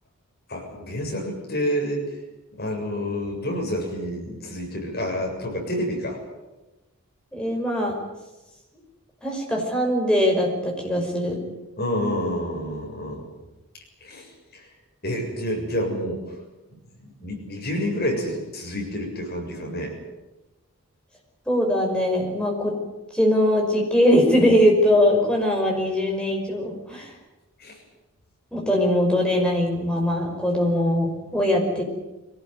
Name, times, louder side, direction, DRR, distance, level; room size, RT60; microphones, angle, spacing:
voice 1, 0.5-2.0 2.5-6.2 11.8-13.2 13.7-14.7 15.0-16.2 17.0-19.9 27.6-27.8, equal, 45° left, 0 dB, 7.2 m, -29 dB
voice 2, 7.3-7.9 9.2-11.4 21.5-22.7 23.1-27.1 28.5-31.8, left 1 dB, 5° left, -1 dB, 5.5 m, -21 dB
23.5 x 18.5 x 9.5 m, 1.1 s
head